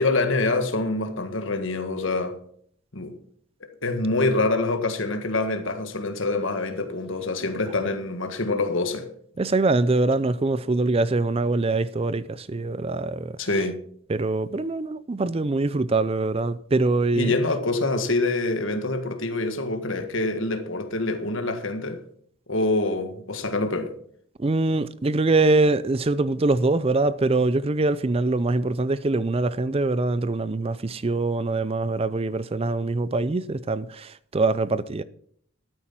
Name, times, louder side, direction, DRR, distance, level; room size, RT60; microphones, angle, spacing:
voice 1, 0.0-2.4 2.9-3.2 3.8-9.1 13.4-13.8 17.1-22.0 22.5-23.9, left 2 dB, 60° left, 1.7 m, -25 dB
voice 2, 9.4-13.4 14.1-17.4 24.4-35.0, right 2 dB, 25° right, 0.4 m, -23 dB
13.0 x 9.1 x 5.9 m
head